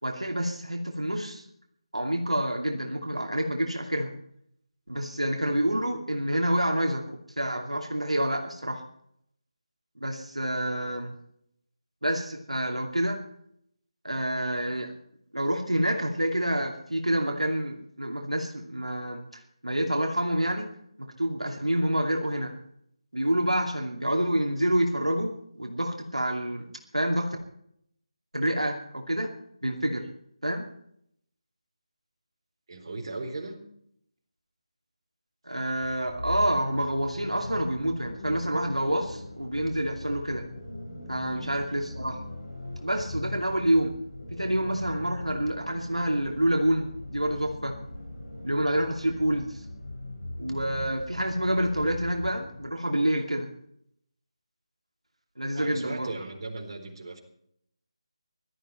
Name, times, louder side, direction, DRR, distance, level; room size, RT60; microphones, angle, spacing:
voice 1, 0.0-1.4 1.9-4.1 4.9-7.0 7.4-8.8 10.0-11.1 12.0-13.2 14.0-14.9 15.3-20.7 21.0-22.5 23.1-26.7 26.9-27.4 28.3-29.3 29.6-30.1 30.4-30.7 35.5-40.5 41.1-42.2 42.8-44.0 44.3-47.8 48.4-49.6 50.4-53.5 55.4-56.1, right 1 dB, 90° right, 1 dB, 2.6 m, -28 dB
voice 2, 32.7-33.6 41.3-41.5 55.5-57.2, right 2 dB, 45° right, 2 dB, 4.1 m, -37 dB
sound 1, 35.8-52.7, left 1 dB, 80° left, 5.5 m, -40 dB
19.0 x 13.0 x 4.4 m, 0.70 s
figure-of-eight pair, 155°, 3 cm